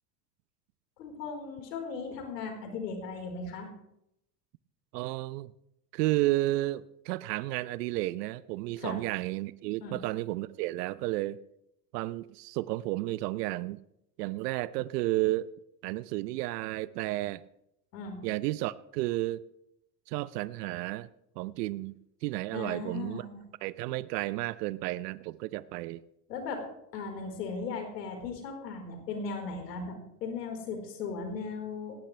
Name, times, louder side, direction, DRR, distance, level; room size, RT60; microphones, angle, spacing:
voice 1, 1.0-3.7 8.8-9.0 9.8-10.0 17.9-18.2 22.5-23.4 26.3-26.6 26.9-32.0, left 4 dB, 85° left, 3 dB, 4.6 m, -37 dB
voice 2, 4.9-5.5 5.9-11.4 11.9-13.8 14.2-15.5 15.8-17.4 18.2-19.4 20.1-21.1 21.4-21.9 22.2-23.3 23.6-26.0, right 18 dB, 75° right, 17 dB, 0.8 m, -32 dB
18.5 x 16.5 x 3.3 m, 0.78 s
hypercardioid pair, 85°, 48 cm